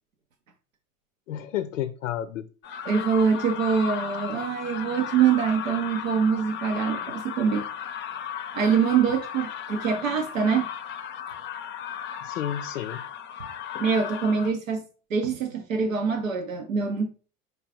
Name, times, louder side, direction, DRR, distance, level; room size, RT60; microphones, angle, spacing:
voice 1, 1.3-2.5 12.2-13.0, left 11 dB, 70° left, 0.5 m, -31 dB
sound 1, 2.6-14.5, left 9 dB, 30° left, 0.6 m, -35 dB
voice 2, 2.9-7.7 8.5-10.7 13.8-14.8 15.1-17.1, right 6 dB, 75° right, 0.7 m, -24 dB
4.6 x 2.4 x 4.8 m
figure-of-eight pair, 70°, 40 cm